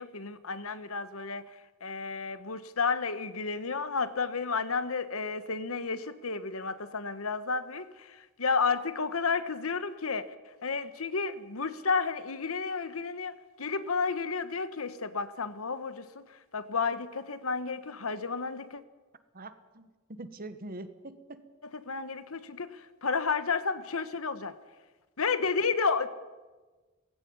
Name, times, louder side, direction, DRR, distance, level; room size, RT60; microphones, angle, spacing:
voice 1, 0.0-18.8 21.8-24.6 25.2-26.1, left 4 dB, 75° left, 13 dB, 1.3 m, -32 dB
voice 2, 19.3-21.4, right 2 dB, 45° right, 11 dB, 1.4 m, -44 dB
18.5 x 15.5 x 9.5 m, 1.3 s
head